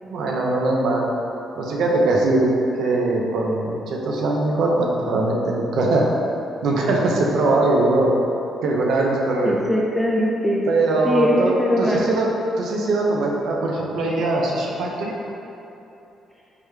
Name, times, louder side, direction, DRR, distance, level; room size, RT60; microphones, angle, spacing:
voice 1, 0.0-1.1 1.6-2.5 2.8-6.0 6.6-8.1 8.6-9.5 10.7-12.3 12.6-15.1, right 2 dB, 75° right, -1 dB, 0.5 m, -21 dB
voice 2, 9.4-10.7 11.0-12.1, equal, 5° left, -4 dB, 0.4 m, -21 dB
5.0 x 2.1 x 3.1 m, 2.9 s
cardioid pair, 90°, 0 cm